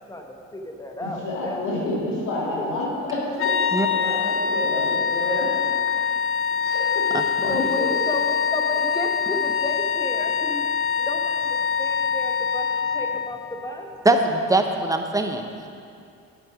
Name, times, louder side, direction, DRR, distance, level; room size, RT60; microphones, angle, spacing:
voice 1, 0.1-1.9 2.6-2.7 7.5-10.6 11.0-13.9, left 1 dB, 10° left, 2 dB, 1.1 m, -33 dB
voice 2, 1.0-5.5 6.6-7.9, left 2 dB, 85° left, -5 dB, 2.0 m, -29 dB
sound 1, 3.4-13.4, left 6 dB, 45° left, 0.5 m, -24 dB
voice 3, 7.1-7.6 14.0-15.5, right 2 dB, 10° right, 5 dB, 0.7 m, -22 dB
7.8 x 7.8 x 4.9 m, 2.5 s
cardioid pair, 90°, 30 cm